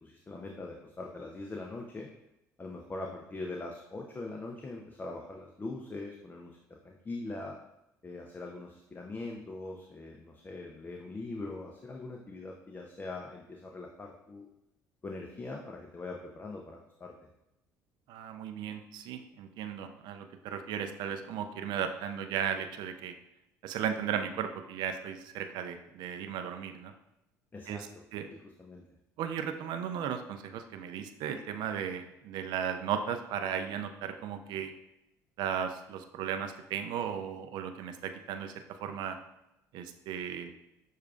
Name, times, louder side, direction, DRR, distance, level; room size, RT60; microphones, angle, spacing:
voice 1, 0.0-2.1 2.6-6.6 6.8-7.5 8.0-14.5 15.0-17.1 27.5-28.0 28.3-28.8, left 2 dB, 25° left, 1 dB, 0.5 m, -42 dB
voice 2, 18.1-23.1 23.6-26.9 27.7-27.9 28.1-28.3 29.2-34.7 35.4-38.5 38.8-39.2 39.7-40.5, right 8 dB, 65° right, 7 dB, 0.4 m, -36 dB
6.3 x 2.4 x 2.4 m, 0.88 s
hypercardioid pair, 65°, 8 cm